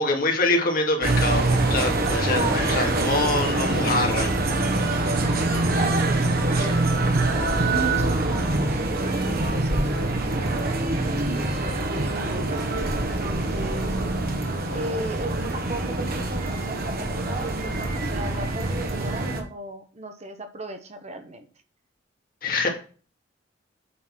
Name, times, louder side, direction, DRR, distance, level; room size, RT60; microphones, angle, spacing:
voice 1, 0.0-4.3 22.4-22.7, left 2 dB, 50° left, 1 dB, 2.3 m, -25 dB
sound 1, 1.0-19.4, right 2 dB, 55° right, 1.5 m, -24 dB
voice 2, 2.3-3.1 5.1-6.8 7.5-14.0 14.7-21.5, right 2 dB, 35° right, 7 dB, 1.0 m, -36 dB
8.5 x 4.1 x 6.1 m, 0.38 s
head